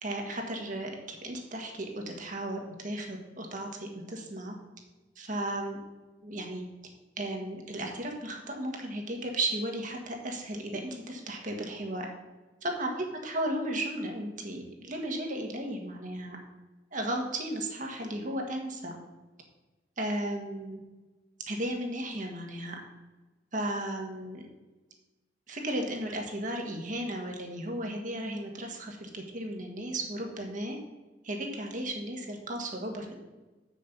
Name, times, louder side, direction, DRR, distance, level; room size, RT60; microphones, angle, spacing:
voice 1, 0.0-4.5 5.2-5.8 6.2-6.6 7.2-12.1 12.6-16.4 16.9-19.0 20.0-20.8 21.4-22.8 23.5-24.4 25.5-30.8 31.2-33.1, right 1 dB, 45° right, 2 dB, 1.6 m, -35 dB
7.7 x 6.4 x 5.3 m, 1.2 s
head